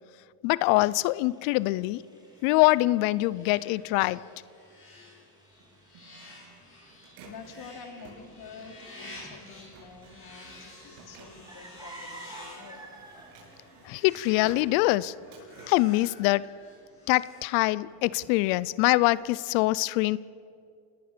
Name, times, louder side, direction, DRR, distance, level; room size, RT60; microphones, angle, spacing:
voice 1, 0.4-2.0 2.4-4.2 13.8-15.1 15.7-16.5 17.1-20.2, left 19 dB, 90° left, 20 dB, 0.7 m, -24 dB
sound 1, 0.9-13.5, right 2 dB, 10° right, 2.9 m, -53 dB
sound 2, 2.1-18.0, left 2 dB, 25° left, 7.1 m, -51 dB
Printer, 5.5-17.0 17.4-19.3, right 4 dB, 75° right, 7.7 m, -53 dB
voice 2, 7.2-12.9, left 5 dB, 50° left, 4 dB, 3.3 m, -47 dB
28.5 x 18.5 x 6.8 m, 2.5 s
cardioid pair, 135°, 49 cm